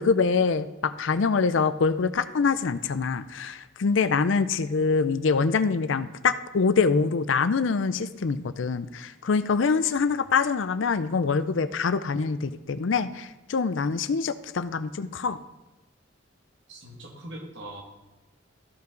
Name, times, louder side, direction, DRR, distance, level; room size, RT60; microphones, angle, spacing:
voice 1, 0.0-15.4, left 5 dB, 70° left, 14 dB, 0.5 m, -25 dB
voice 2, 16.7-17.8, right 1 dB, 70° right, 0 dB, 2.1 m, -41 dB
14.0 x 5.5 x 3.9 m, 1.1 s
head